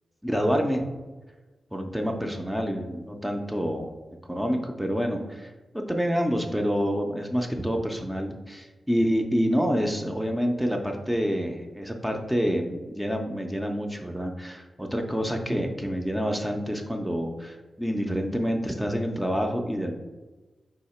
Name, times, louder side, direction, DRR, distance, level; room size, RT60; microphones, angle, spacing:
voice 1, 0.2-0.8 1.7-3.9 4.3-20.0, equal, 5° right, 3 dB, 0.4 m, -27 dB
4.0 x 2.8 x 4.2 m, 1.2 s
wide cardioid pair, 115°, 0 cm